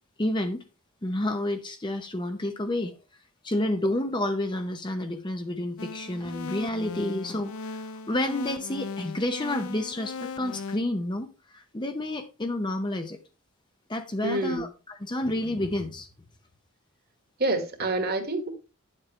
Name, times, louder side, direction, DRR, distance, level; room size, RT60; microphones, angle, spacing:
voice 1, 0.2-0.6 1.0-2.9 3.4-11.3 11.5-13.2 13.9-16.1, left 1 dB, 20° left, 0.7 m, -30 dB
sound 1, 5.8-10.8, left 4 dB, 75° left, 0.7 m, -38 dB
voice 2, 14.2-14.6 17.4-18.5, right 2 dB, 45° right, 1.7 m, -27 dB
10.5 x 7.5 x 3.1 m
head